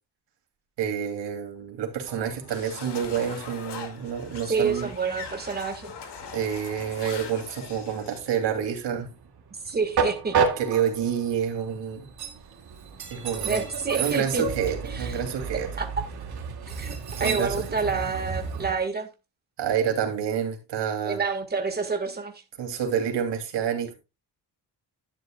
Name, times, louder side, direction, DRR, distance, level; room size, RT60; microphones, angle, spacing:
voice 1, 0.8-4.9 6.3-9.1 10.6-12.1 13.1-13.6 14.0-15.7 17.2-17.6 19.6-21.2 22.6-24.0, right 8 dB, 80° right, 3.0 m, -28 dB
Train, 1.9-18.7, right 5 dB, 60° right, 2.3 m, -33 dB
sound 1, 2.5-8.2, left 6 dB, 75° left, 2.4 m, -41 dB
voice 2, 4.5-5.9 9.6-10.4 13.4-14.4 14.8-15.2 15.8-15.9 16.7-19.1 21.0-22.4, right 5 dB, 25° right, 1.7 m, -28 dB
11.5 x 10.5 x 2.3 m
cardioid pair, 145°, 42 cm